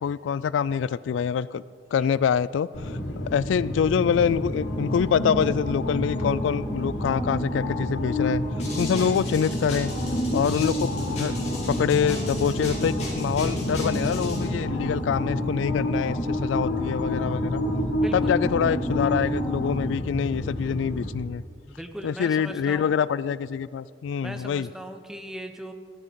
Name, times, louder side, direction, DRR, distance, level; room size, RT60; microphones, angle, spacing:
voice 1, 0.0-1.6 1.9-8.4 8.8-9.9 10.3-17.6 18.1-21.4 22.0-24.7, left 7 dB, 85° left, 19 dB, 0.3 m, -25 dB
sound 1, 2.7-21.1, left 1 dB, 70° left, 1.7 m, -28 dB
sound 2, 8.6-14.5, left 1 dB, 35° left, 3.9 m, -35 dB
voice 2, 17.9-18.4 21.7-23.0 24.2-25.7, equal, 5° right, 6 dB, 0.8 m, -38 dB
14.0 x 12.5 x 5.2 m, 2.2 s
head